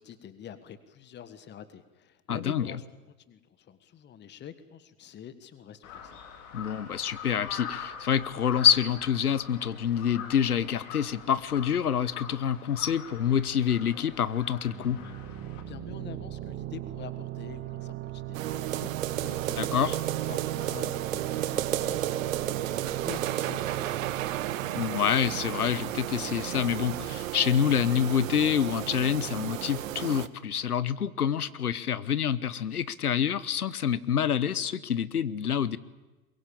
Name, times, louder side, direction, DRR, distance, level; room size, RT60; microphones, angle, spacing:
voice 1, 0.0-3.0 3.3-6.2 15.7-19.7 20.3-22.2 22.4-24.3, left 9 dB, 25° left, 13 dB, 1.6 m, -46 dB
voice 2, 2.3-2.7 6.5-15.1 19.6-20.0 24.7-35.8, left 8 dB, 80° left, 17 dB, 1.2 m, -27 dB
Crow, 5.8-15.6, left 7 dB, 40° left, 4.7 m, -44 dB
sound 1, 14.7-26.1, right 15 dB, 30° right, 1.6 m, -39 dB
sound 2, 18.3-30.3, right 13 dB, 60° right, 1.3 m, -33 dB
22.5 x 22.5 x 8.7 m, 1.1 s
figure-of-eight pair, 95°, 44 cm